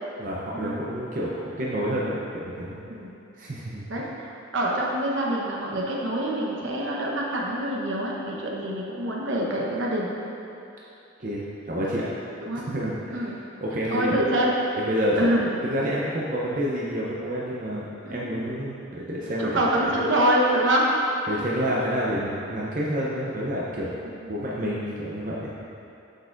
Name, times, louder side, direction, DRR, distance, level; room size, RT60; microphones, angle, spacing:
voice 1, 0.2-2.8 3.3-4.0 11.2-12.1 12.6-14.1 14.8-15.3 15.6-20.0 21.3-24.0 24.3-25.6, equal, 40° right, -5 dB, 0.6 m, -29 dB
voice 2, 3.9-10.1 12.4-12.7 13.1-13.4 13.9-14.5 15.2-15.5 18.0-18.3 19.4-20.8, right 1 dB, 70° right, -3 dB, 1.0 m, -25 dB
8.0 x 6.6 x 2.5 m, 2.8 s
head